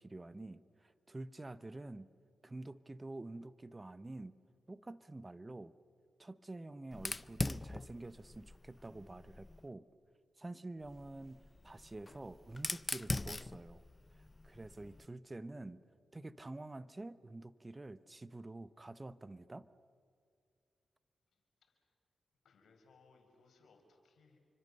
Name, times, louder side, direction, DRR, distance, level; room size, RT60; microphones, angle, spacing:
voice 1, 0.0-2.1 2.4-4.4 4.7-5.7 6.2-9.9 10.4-13.8 14.1-15.8 16.1-19.7, right 2 dB, 25° right, 15 dB, 1.1 m, -48 dB
Fire, 6.9-9.7 10.8-15.1, left 2 dB, 30° left, 0.7 m, -42 dB
voice 2, 22.4-24.4, left 4 dB, 75° left, 3 dB, 5.1 m, -67 dB
28.0 x 25.0 x 6.8 m, 2.3 s
supercardioid pair, 40°, 0 cm